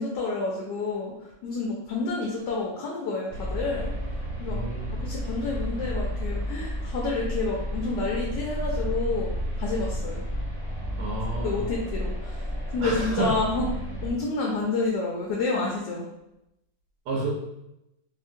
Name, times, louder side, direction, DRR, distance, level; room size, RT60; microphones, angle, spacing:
voice 1, 0.0-3.9 4.4-9.3 9.6-10.2 11.4-13.7 14.0-16.0, left 3 dB, 75° left, -2 dB, 1.2 m, -29 dB
sound 1, 3.3-14.1, equal, 25° right, 1.0 m, -31 dB
voice 2, 4.5-4.9 11.0-11.6 12.8-13.3 17.1-17.3, right 3 dB, 75° right, -4 dB, 1.2 m, -30 dB
2.9 x 2.8 x 2.5 m, 0.87 s
omnidirectional pair, 2.0 m